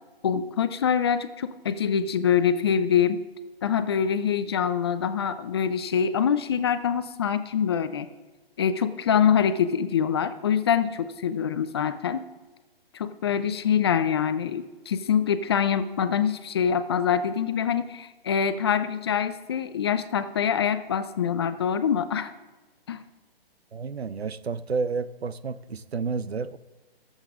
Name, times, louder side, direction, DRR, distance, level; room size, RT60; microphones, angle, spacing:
voice 1, 0.2-3.2 3.6-8.1 8.6-12.2 12.9-22.3 22.9-23.0, left 8 dB, 25° left, 11 dB, 0.5 m, -25 dB
voice 2, 23.7-26.6, right 4 dB, 85° right, 15 dB, 0.8 m, -30 dB
24.5 x 8.1 x 3.6 m, 1.2 s
hypercardioid pair, 145°, 31 cm